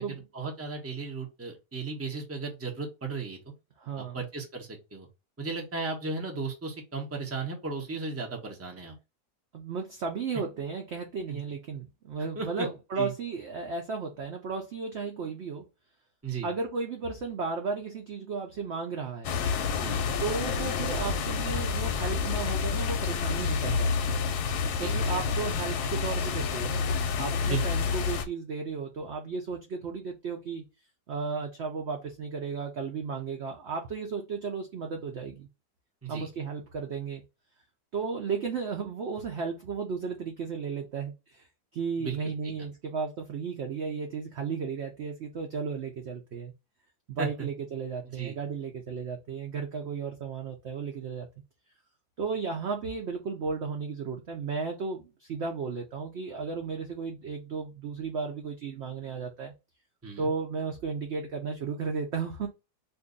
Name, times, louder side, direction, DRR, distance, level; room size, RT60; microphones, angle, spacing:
voice 1, 0.3-3.4 4.0-5.1 5.4-8.9 11.3-11.4 12.4-12.7 13.0-13.1 16.2-16.5 19.7-20.0 24.8-25.0 27.5-27.6 36.0-36.3 42.0-42.5 47.2-47.3 48.0-48.4 60.0-60.3, right 4 dB, 15° right, 0.6 m, -35 dB
voice 2, 3.8-4.2 9.5-15.7 16.4-19.4 20.2-24.2 24.8-30.6 31.1-35.5 36.1-37.2 37.9-41.5 41.7-46.5 47.1-51.3 52.2-59.5 60.2-62.5, right 5 dB, 70° right, 0.6 m, -34 dB
sound 1, 19.2-28.2, left 5 dB, 75° left, 1.1 m, -29 dB
2.7 x 2.6 x 3.7 m
omnidirectional pair, 1.8 m